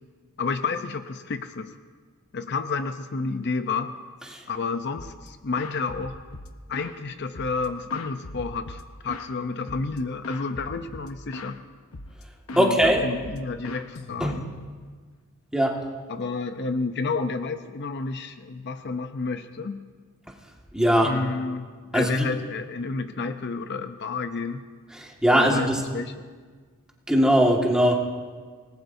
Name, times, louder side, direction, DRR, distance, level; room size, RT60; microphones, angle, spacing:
voice 1, 0.4-1.8 2.3-4.0 4.5-6.2 6.7-11.6 12.5-14.5 16.1-19.9 21.0-24.6 25.3-26.2, left 4 dB, 50° left, 8 dB, 0.6 m, -30 dB
sound 1, 5.0-5.3 5.6-7.0 7.3-9.3 9.7-10.0 10.2-11.6 11.9-12.2 12.5-14.6, left 2 dB, 70° left, 0.9 m, -40 dB
voice 2, 12.6-13.0 14.2-14.4 15.5-15.8 20.7-21.1 21.9-22.3 24.9-25.8 27.1-28.0, equal, 5° right, -1 dB, 1.8 m, -20 dB
27.0 x 19.5 x 2.7 m, 1.5 s
head